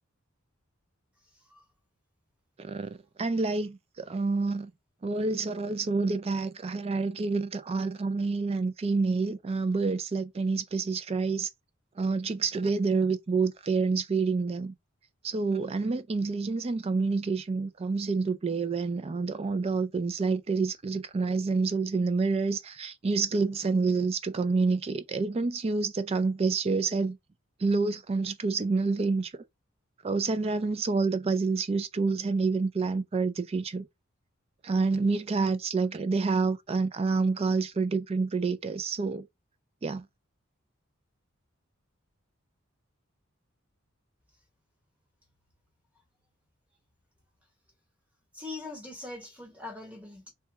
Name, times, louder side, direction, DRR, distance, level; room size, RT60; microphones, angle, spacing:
voice 1, 2.6-2.9 3.2-4.7 5.0-11.5 12.0-14.7 15.2-27.2 27.6-29.3 30.0-33.9 34.6-39.3 39.8-40.0, right 4 dB, 30° right, 0.3 m, -28 dB
voice 2, 48.3-50.3, left 2 dB, 5° right, 1.2 m, -41 dB
2.9 x 2.2 x 3.3 m
head